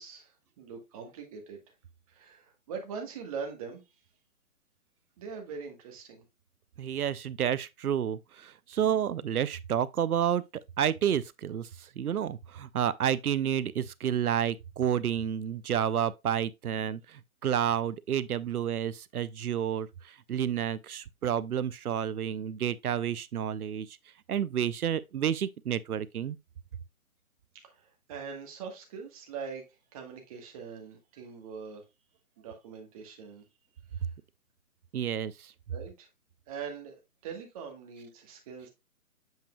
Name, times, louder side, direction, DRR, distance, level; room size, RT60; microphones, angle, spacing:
voice 1, 0.0-1.6 2.1-3.8 5.2-6.2 27.5-31.8 32.4-33.4 33.9-34.1 35.7-36.1 36.5-38.7, right 6 dB, 25° right, 1.3 m, -42 dB
voice 2, 6.8-24.0 24.3-26.4 34.9-35.5, right 9 dB, 80° right, 0.6 m, -30 dB
7.5 x 5.6 x 2.3 m
figure-of-eight pair, 145°, 44 cm